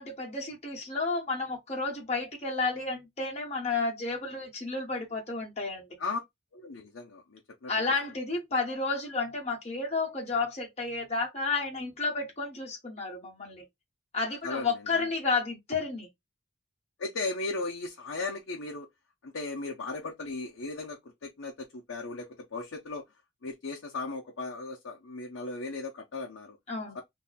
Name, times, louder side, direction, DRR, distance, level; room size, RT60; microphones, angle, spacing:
voice 1, 0.0-5.9 7.7-13.6 14.1-16.1 26.7-26.9, left 3 dB, 35° left, 1.1 m, -31 dB
voice 2, 6.5-8.0 14.4-15.1 17.0-18.9 19.2-23.0 23.4-26.6 26.9-27.0, left 3 dB, 85° left, 0.6 m, -37 dB
2.7 x 2.2 x 4.0 m
head